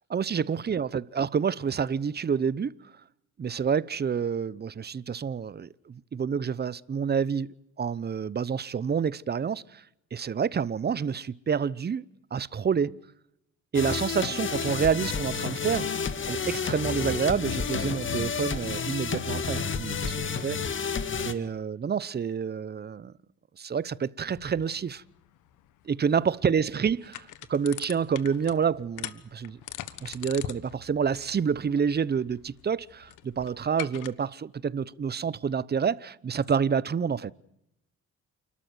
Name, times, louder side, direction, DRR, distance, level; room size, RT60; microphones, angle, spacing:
voice 1, 0.1-2.8 3.4-7.5 7.8-9.8 10.1-12.0 12.3-13.0 13.7-15.9 16.3-20.6 21.2-23.1 23.6-25.0 25.9-27.0 27.5-29.6 30.0-37.3, right 6 dB, 35° right, 0.8 m, -28 dB
sound 1, 13.7-21.3, left 5 dB, 40° left, 1.9 m, -30 dB
sound 2, 24.2-34.1, left 13 dB, 90° left, 1.3 m, -43 dB
29.0 x 13.0 x 9.2 m
cardioid pair, 90°, 30 cm